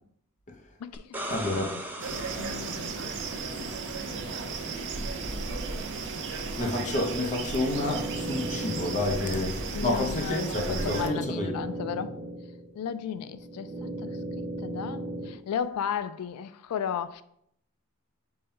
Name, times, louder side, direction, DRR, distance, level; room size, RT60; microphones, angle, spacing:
voice 1, 0.8-1.8 2.1-3.1 9.7-12.1 12.7-17.2, left 8 dB, 80° left, 0.3 m, -35 dB
sound 1, 0.9-3.8 6.6-6.7, right 1 dB, 10° right, 0.5 m, -39 dB
voice 2, 1.3-1.7 6.3-11.5, left 2 dB, 35° left, 0.6 m, -29 dB
sound 2, 2.0-11.1, right 4 dB, 55° right, 0.6 m, -34 dB
sound 3, 7.2-15.3, right 1 dB, 25° right, 0.9 m, -37 dB
5.4 x 2.2 x 4.2 m
head